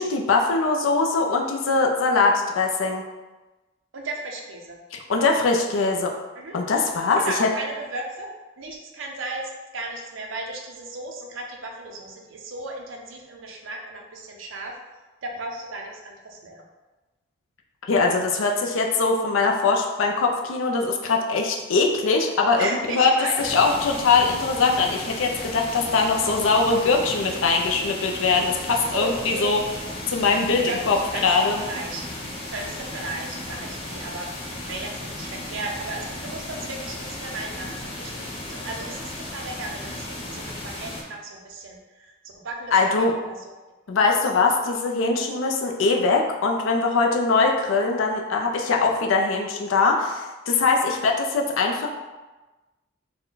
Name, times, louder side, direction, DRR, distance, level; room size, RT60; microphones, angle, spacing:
voice 1, 0.0-3.0 4.9-6.1 6.5-7.5 17.9-23.1 23.4-29.6 30.1-31.0 31.2-31.6 42.7-43.1 43.9-51.9, left 4 dB, 90° left, 1 dB, 0.5 m, -22 dB
voice 2, 3.9-4.8 6.4-6.5 7.1-8.3 8.6-9.4 9.7-14.7 15.2-16.6 22.6-23.3 25.9-26.1 28.9-29.5 30.6-32.0 32.5-34.3 34.7-42.9 43.2-43.5 51.0-51.1, right 2 dB, 85° right, 1 dB, 0.6 m, -35 dB
sound 1, 23.4-41.0, left 1 dB, 30° left, 0.6 m, -35 dB
4.3 x 2.2 x 3.9 m, 1.2 s
head